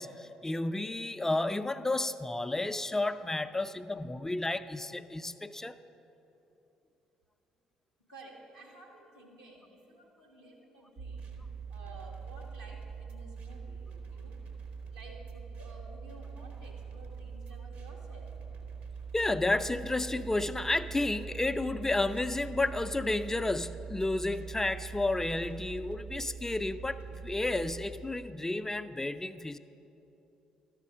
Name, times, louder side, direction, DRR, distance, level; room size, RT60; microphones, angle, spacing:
voice 1, 0.0-5.8 19.1-29.6, left 2 dB, 15° left, 11 dB, 0.3 m, -31 dB
voice 2, 8.1-14.3 14.9-18.3, right 2 dB, 85° right, -2 dB, 1.4 m, -53 dB
sound 1, 11.0-27.9, right 6 dB, 65° right, 1.0 m, -43 dB
12.5 x 5.0 x 6.0 m, 3.0 s
figure-of-eight pair, 45°, 3 cm